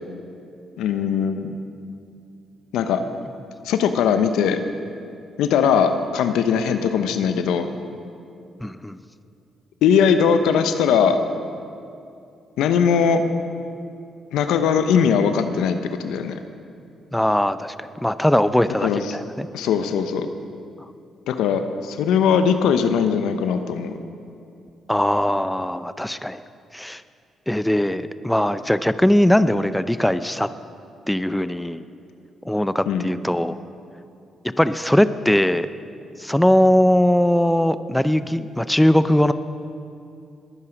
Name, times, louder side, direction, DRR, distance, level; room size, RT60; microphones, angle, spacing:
voice 1, 0.8-1.5 2.7-3.0 3.6-4.6 5.4-7.7 9.8-11.2 12.6-13.2 14.3-16.4 18.8-19.2 19.5-20.3 21.3-23.9 32.9-33.1, left 7 dB, 80° left, 8 dB, 0.9 m, -20 dB
voice 2, 8.6-9.0 17.1-19.5 24.9-26.4 26.7-27.0 27.5-30.5 31.1-31.8 32.5-33.6 34.6-35.7 36.2-39.3, left 1 dB, 5° left, 13 dB, 0.6 m, -20 dB
21.0 x 9.7 x 5.2 m, 2.6 s
supercardioid pair, 50°, 0 cm